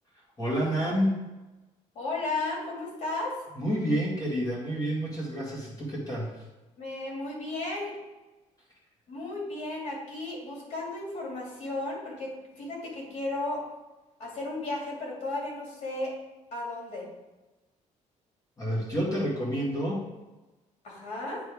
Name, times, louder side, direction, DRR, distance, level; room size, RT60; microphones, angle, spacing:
voice 1, 0.4-1.2 3.6-6.3 18.6-20.0, equal, 30° left, -5 dB, 2.1 m, -29 dB
voice 2, 1.9-3.3 6.8-7.9 9.1-13.6 14.2-16.1 16.5-17.0 20.8-21.4, left 2 dB, 65° left, -2 dB, 2.5 m, -34 dB
9.5 x 3.4 x 4.8 m, 1.1 s
cardioid pair, 145°, 13 cm